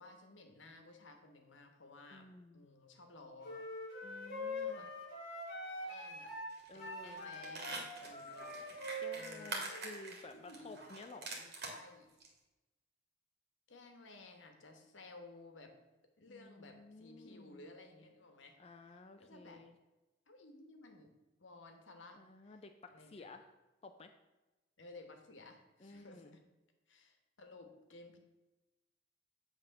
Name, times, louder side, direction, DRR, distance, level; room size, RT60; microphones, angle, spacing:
voice 1, 0.0-3.6 4.6-4.9 5.8-6.4 6.7-9.5 10.3-10.8 11.3-12.1 13.7-15.7 16.2-18.6 18.8-19.6 20.3-21.1 21.4-22.2 22.4-22.6 22.9-23.3 24.8-26.4 26.9-28.2, left 2 dB, 85° left, 5 dB, 1.2 m, -56 dB
voice 2, 2.1-2.7 4.0-4.9 6.7-7.2 9.0-11.3 16.3-17.6 18.6-19.7 22.2-23.5 23.8-24.1 25.8-26.4, left 3 dB, 35° left, 6 dB, 0.4 m, -54 dB
sound 1, 3.4-9.9, left 1 dB, 55° left, 1.6 m, -44 dB
sound 2, 6.5-6.8 7.1-11.8 12.2-12.3, right 3 dB, 60° right, 1.8 m, -45 dB
8.0 x 3.6 x 6.5 m, 1.1 s
head